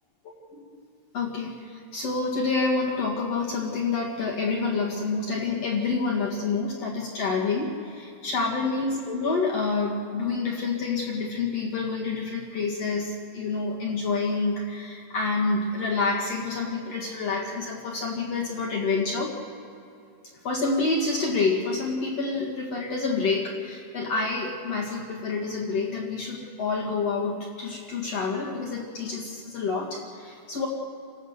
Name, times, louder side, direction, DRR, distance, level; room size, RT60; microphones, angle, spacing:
voice 1, 1.1-19.3 20.4-30.7, left 4 dB, 50° left, -2 dB, 2.1 m, -28 dB
29.5 x 16.5 x 6.6 m, 2.7 s
omnidirectional pair, 5.5 m